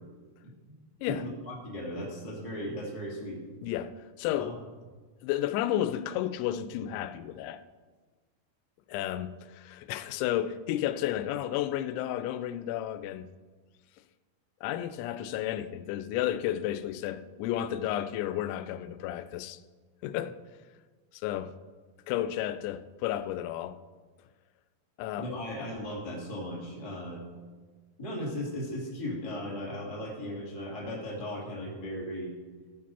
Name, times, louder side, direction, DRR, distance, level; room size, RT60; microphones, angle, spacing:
voice 1, 0.4-0.7 1.0-3.4 4.4-4.6 25.2-27.2 28.0-32.3, left 1 dB, 15° left, 1.1 m, -37 dB
voice 2, 3.6-4.6 5.2-7.6 8.9-13.3 14.6-19.6 20.0-20.4 21.1-21.6 22.1-23.8 25.0-25.3, left 12 dB, 85° left, 2.9 m, -32 dB
15.0 x 5.2 x 5.5 m
omnidirectional pair, 5.2 m